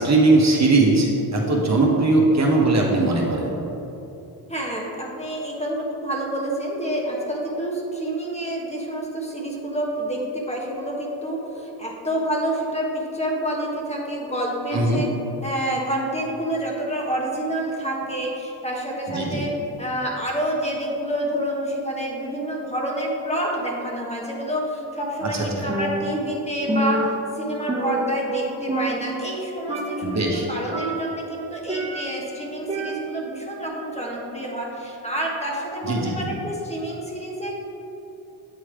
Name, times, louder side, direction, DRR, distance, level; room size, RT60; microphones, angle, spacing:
voice 1, 0.0-3.5 14.7-15.0 19.1-19.4 25.2-25.7 30.0-30.5 35.8-36.1, right 2 dB, 40° right, -2 dB, 1.2 m, -19 dB
voice 2, 4.5-15.1 15.4-37.6, right 1 dB, 15° left, -2 dB, 1.2 m, -28 dB
Percussion, 25.7-26.4 26.7-28.4 28.7-29.4 29.7-30.2 30.7-32.3 32.7-33.4, right 1 dB, 15° right, 1.5 m, -28 dB
8.4 x 3.2 x 4.9 m, 3.0 s
cardioid pair, 70°, 42 cm